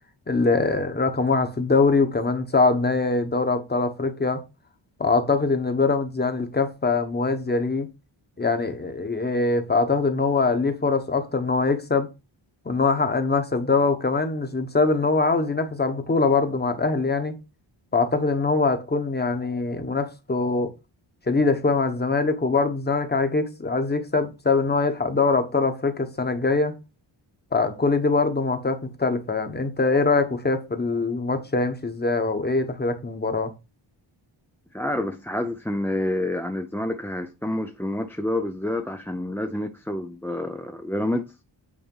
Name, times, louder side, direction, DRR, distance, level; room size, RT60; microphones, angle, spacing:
voice 1, 0.3-4.4 5.0-7.9 8.4-12.1 12.6-17.3 17.9-20.7 21.3-26.7 27.5-33.5, left 3 dB, 20° left, 1.1 m, -23 dB
voice 2, 34.7-41.3, left 1 dB, 5° left, 0.4 m, -28 dB
8.7 x 4.1 x 5.5 m
wide cardioid pair, 180°, 47 cm